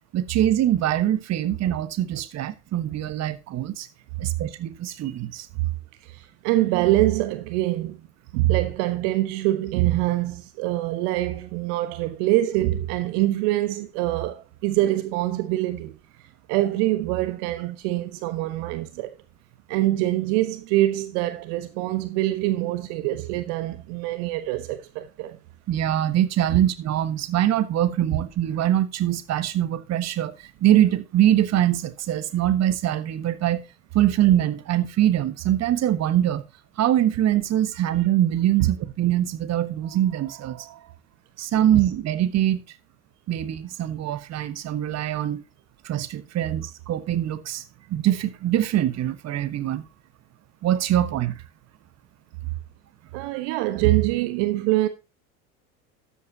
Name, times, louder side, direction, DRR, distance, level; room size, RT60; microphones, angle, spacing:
voice 1, 0.1-3.9 4.2-5.5 25.7-33.6 33.9-36.4 36.8-40.8 41.4-42.6 43.3-45.4 45.8-47.6 47.9-49.8 50.6-51.4, right 12 dB, 35° right, 1.4 m, -23 dB
voice 2, 6.1-8.0 8.3-16.0 16.5-19.1 19.7-25.4 38.6-38.7 53.1-54.9, right 16 dB, 55° right, 1.2 m, -24 dB
13.0 x 8.6 x 2.8 m
hypercardioid pair, 75°, 44 cm